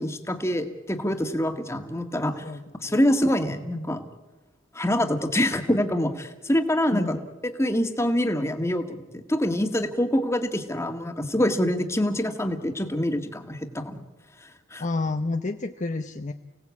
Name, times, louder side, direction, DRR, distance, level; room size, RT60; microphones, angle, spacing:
voice 1, 0.0-2.4 2.8-4.0 4.8-7.2 7.4-14.0 14.7-14.8, left 1 dB, 15° left, 6 dB, 1.7 m, -25 dB
voice 2, 2.4-3.0 6.9-7.2 14.8-16.3, left 3 dB, 35° left, 6 dB, 0.7 m, -30 dB
30.0 x 18.0 x 8.4 m, 1.2 s
head